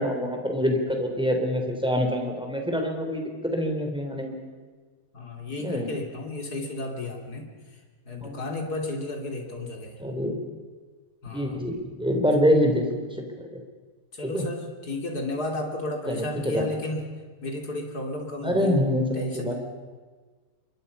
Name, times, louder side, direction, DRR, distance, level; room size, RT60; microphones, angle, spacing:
voice 1, 0.0-4.4 5.6-5.9 8.2-8.4 10.0-10.3 11.3-12.8 13.4-13.5 14.2-14.5 16.1-16.7 18.4-19.5, equal, 5° right, 3 dB, 3.6 m, -25 dB
voice 2, 5.1-7.5 8.1-10.0 11.2-11.8 14.1-17.0 17.4-18.7 19.1-19.5, left 2 dB, 65° left, 2 dB, 3.8 m, -33 dB
27.0 x 23.0 x 5.6 m, 1.4 s
omnidirectional pair, 1.8 m